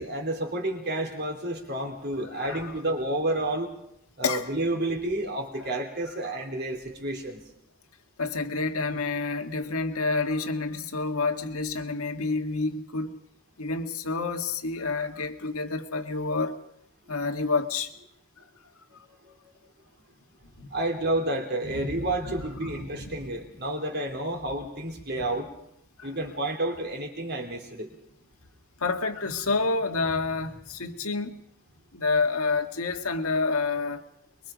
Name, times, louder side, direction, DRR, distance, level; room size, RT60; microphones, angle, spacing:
voice 1, 0.0-3.7 4.2-7.4 20.7-25.5 26.0-27.9, right 1 dB, 50° right, 3 dB, 3.4 m, -30 dB
voice 2, 2.3-2.7 4.2-4.5 5.6-5.7 8.2-13.2 13.6-16.6 17.1-17.9 18.9-19.0 20.6-20.7 21.6-23.2 26.0-26.1 28.8-31.4 31.9-34.1, left 3 dB, 85° left, 5 dB, 1.9 m, -29 dB
23.5 x 23.0 x 5.1 m, 0.76 s
head